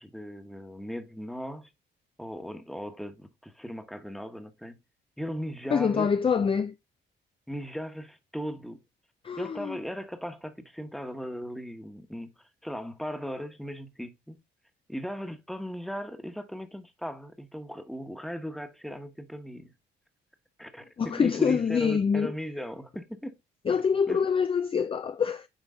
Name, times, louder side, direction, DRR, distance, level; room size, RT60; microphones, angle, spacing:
voice 1, 0.0-1.7 2.2-4.8 5.2-6.1 7.5-8.8 9.4-12.3 12.6-14.4 14.9-19.7 20.6-23.3 24.1-24.2, equal, ahead, 1.2 m, -37 dB
voice 2, 5.7-6.7 9.2-9.8 21.0-22.3 23.7-25.5, left 6 dB, 25° left, 0.4 m, -25 dB
9.3 x 3.3 x 3.6 m
cardioid pair, 90°, 20 cm